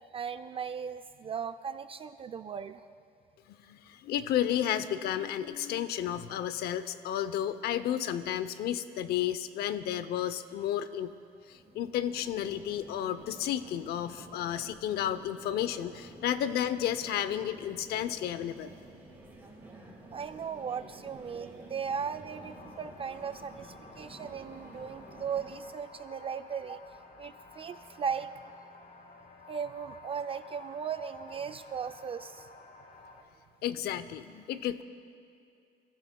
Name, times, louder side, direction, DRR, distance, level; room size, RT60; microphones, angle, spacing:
voice 1, 0.1-2.8 20.1-26.8 27.2-28.3 29.5-32.5, right 7 dB, 35° right, 10 dB, 0.4 m, -37 dB
voice 2, 3.7-11.1 11.5-18.7 33.6-34.8, left 10 dB, 70° left, 13 dB, 0.7 m, -32 dB
sound 1, 11.5-25.5, right 2 dB, 10° right, 4.2 m, -51 dB
sound 2, 22.3-33.2, left 3 dB, 50° left, 2.1 m, -52 dB
29.0 x 15.0 x 2.3 m, 2.4 s
cardioid pair, 110°, 17 cm